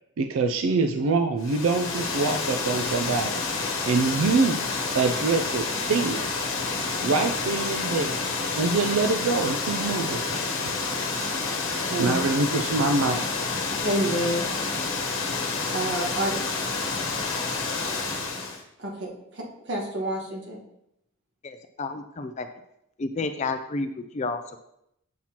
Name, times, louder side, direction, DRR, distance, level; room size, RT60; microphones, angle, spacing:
voice 1, 0.2-3.4 3.8-4.7 4.9-6.3 7.0-8.2 8.5-10.4 11.1-11.2 12.0-13.6 16.8-17.0, right 3 dB, 70° right, 6 dB, 0.4 m, -25 dB
Water, 1.4-18.6, left 4 dB, 60° left, 1.1 m, -29 dB
voice 2, 13.8-14.5 15.7-16.3 18.8-20.6, right 1 dB, 55° right, -1 dB, 1.4 m, -29 dB
voice 3, 21.4-22.5 23.0-24.6, left 3 dB, 30° left, 8 dB, 0.4 m, -31 dB
7.5 x 5.7 x 2.9 m, 0.79 s
head